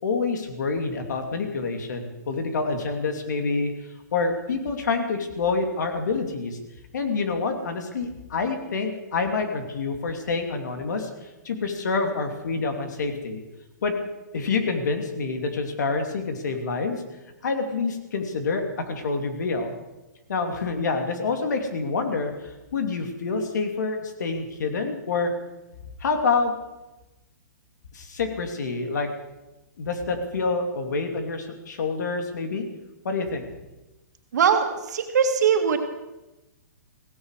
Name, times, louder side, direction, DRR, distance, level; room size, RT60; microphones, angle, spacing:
voice 1, 0.0-3.7 4.1-6.6 6.9-13.4 13.8-13.9 14.3-17.0 17.4-19.7 20.3-25.3 26.0-26.5 27.9-29.1 29.8-32.7 33.0-33.5, left 4 dB, 70° left, 5 dB, 2.7 m, -27 dB
voice 2, 34.3-35.8, right 7 dB, 65° right, 5 dB, 2.3 m, -21 dB
16.5 x 16.0 x 4.9 m, 1.0 s
hypercardioid pair, 165°, 10 cm